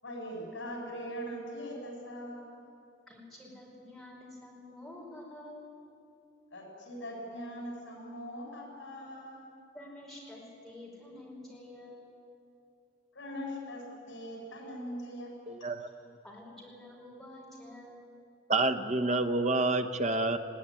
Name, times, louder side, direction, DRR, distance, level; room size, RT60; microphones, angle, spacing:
voice 1, 0.0-2.6 6.5-9.5 13.1-15.3 15.6-15.7, equal, 70° left, 0 dB, 7.1 m, -41 dB
voice 2, 3.1-5.7 9.7-12.2 16.2-18.1, left 1 dB, ahead, -4 dB, 5.1 m, -49 dB
voice 3, 15.5-15.9 18.5-20.4, right 2 dB, 35° right, 8 dB, 1.0 m, -28 dB
20.5 x 17.0 x 9.8 m, 2.6 s
head